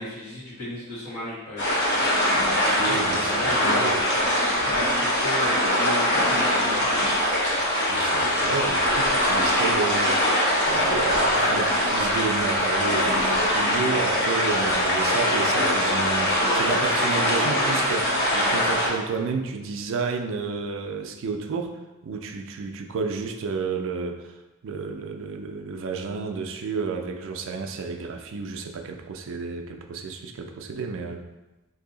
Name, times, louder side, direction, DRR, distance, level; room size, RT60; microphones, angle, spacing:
voice 1, 0.0-2.1 2.6-7.1, left 1 dB, 70° left, -8 dB, 1.5 m, -36 dB
sound 1, 1.6-18.9, equal, 50° left, 0.9 m, -22 dB
voice 2, 2.3-4.0 7.9-24.3 24.6-31.2, right 4 dB, 60° right, 4 dB, 0.3 m, -31 dB
2.7 x 2.7 x 3.8 m, 1.1 s
head